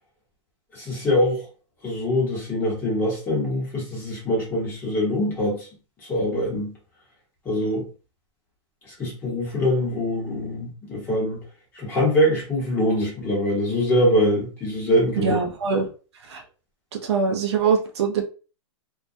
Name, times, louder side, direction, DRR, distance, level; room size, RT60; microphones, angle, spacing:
voice 1, 0.7-1.5 1.8-5.7 6.0-6.7 7.4-7.9 8.8-11.4 11.7-15.4, left 1 dB, 15° left, 0.9 m, -23 dB
voice 2, 15.2-15.9 16.2-16.4 16.9-18.2, right 5 dB, 55° right, 0.5 m, -23 dB
2.3 x 2.1 x 2.6 m
hypercardioid pair, 165°, 17 cm